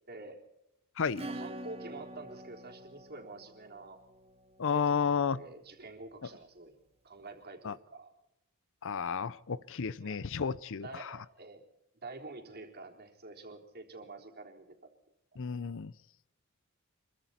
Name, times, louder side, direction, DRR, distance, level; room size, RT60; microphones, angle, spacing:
voice 1, 0.1-0.4 1.3-4.0 4.7-6.8 7.0-8.1 10.0-10.2 10.8-11.6 12.0-14.9, right 3 dB, 45° right, 2 dB, 3.7 m, -48 dB
voice 2, 1.0-1.3 4.6-5.4 7.6-7.7 8.8-11.1 15.4-15.9, left 6 dB, 60° left, 19 dB, 0.6 m, -32 dB
Acoustic guitar / Strum, 1.2-5.4, right 1 dB, 30° right, 1.8 m, -46 dB
25.5 x 23.0 x 4.3 m, 0.88 s
head